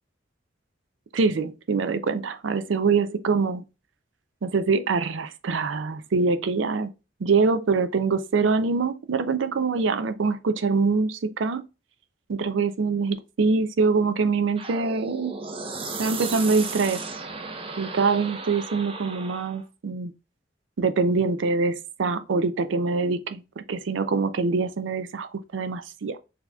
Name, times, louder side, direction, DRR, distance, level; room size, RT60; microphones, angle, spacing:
voice 1, 1.1-3.6 4.4-6.9 7.2-11.6 12.3-15.3 16.0-17.0 17.8-20.1 20.8-26.2, right 4 dB, 80° right, 0.5 m, -24 dB
sound 1, 14.6-19.6, right 4 dB, 30° right, 0.6 m, -35 dB
6.1 x 2.8 x 2.2 m
head